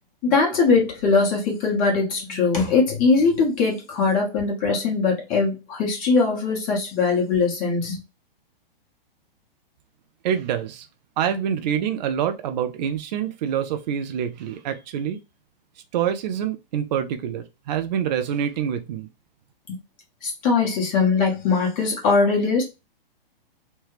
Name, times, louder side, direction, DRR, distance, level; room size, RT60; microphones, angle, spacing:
voice 1, 0.2-8.0 19.7-19.8 20.2-22.6, left 4 dB, 30° left, 1.3 m, -21 dB
voice 2, 10.2-10.9 11.2-15.2 15.9-19.1, right 9 dB, 50° right, 0.6 m, -26 dB
3.3 x 2.2 x 3.1 m
hypercardioid pair, 120°, 29 cm